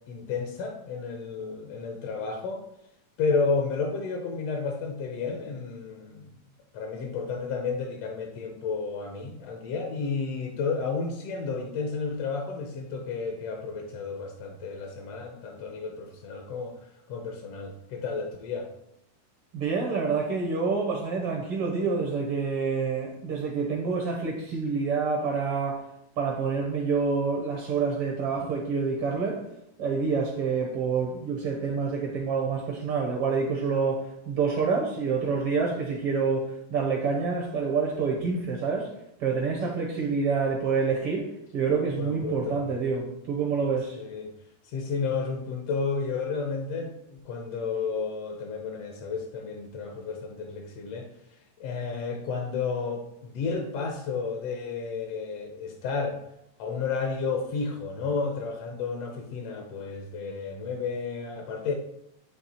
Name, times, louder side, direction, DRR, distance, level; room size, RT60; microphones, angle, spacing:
voice 1, 0.1-2.6 3.2-6.3 6.7-18.7 42.0-42.6 43.9-44.3 44.6-56.2 56.6-61.7, left 4 dB, 75° left, 3 dB, 1.5 m, -32 dB
voice 2, 19.5-25.9 26.2-29.5 29.8-38.9 39.2-44.0, right 5 dB, 65° right, 0 dB, 1.5 m, -27 dB
9.1 x 3.3 x 4.2 m, 0.77 s
omnidirectional pair, 3.5 m